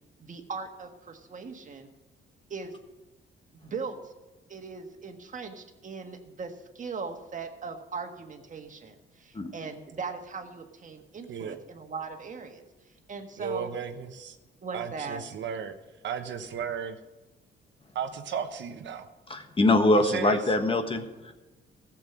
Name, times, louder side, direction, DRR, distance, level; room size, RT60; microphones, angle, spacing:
voice 1, 0.2-1.9 2.5-2.7 3.6-4.1 4.5-12.6 13.1-13.7 14.6-15.2, right 4 dB, 40° right, 5 dB, 1.6 m, -39 dB
voice 2, 13.4-14.4 14.7-15.7 16.0-17.0 17.9-19.1 20.0-20.4, right 7 dB, 65° right, 7 dB, 1.0 m, -34 dB
voice 3, 19.3-21.3, left 2 dB, 25° left, 7 dB, 1.3 m, -23 dB
14.5 x 7.5 x 6.1 m, 1.1 s
cardioid pair, 90°, 20 cm